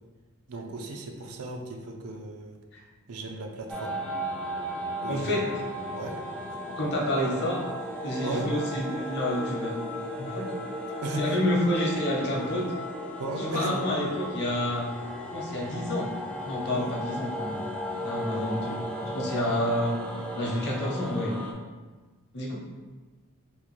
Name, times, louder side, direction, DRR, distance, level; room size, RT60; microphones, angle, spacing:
voice 1, 0.5-2.6 3.1-3.9 5.0-5.6 5.9-6.2 8.2-8.5 11.0-11.2 13.2-13.8 16.6-16.9, right 2 dB, 90° right, 3 dB, 0.5 m, -35 dB
sound 1, 3.7-21.5, equal, 5° left, 0.3 m, -35 dB
voice 2, 5.1-5.4 6.8-7.6 8.0-9.7 10.2-10.5 11.2-12.7 13.4-14.8 15.3-16.1 16.5-17.6 18.0-18.8 19.1-19.9 20.3-21.3 22.3-22.5, left 1 dB, 50° left, -3 dB, 0.8 m, -28 dB
3.6 x 2.5 x 3.0 m, 1.3 s
head